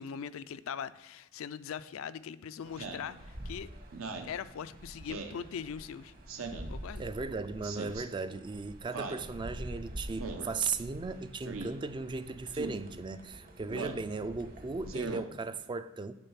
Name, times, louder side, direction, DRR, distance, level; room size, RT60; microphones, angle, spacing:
voice 1, 0.0-3.7 4.2-6.1 6.7-7.1, left 7 dB, 75° left, 0.4 m, -41 dB
sound 1, 2.6-15.0, equal, 45° right, 1.1 m, -47 dB
Speech synthesizer, 2.8-3.1 3.9-4.3 5.1-5.4 6.3-6.7 7.6-8.0 8.9-9.2 10.2-10.5 11.4-11.7 12.5-12.8 13.7-14.0 14.9-15.2, right 3 dB, 80° right, 0.8 m, -39 dB
voice 2, 7.0-16.1, right 4 dB, 25° right, 0.3 m, -37 dB
8.8 x 3.9 x 5.7 m
head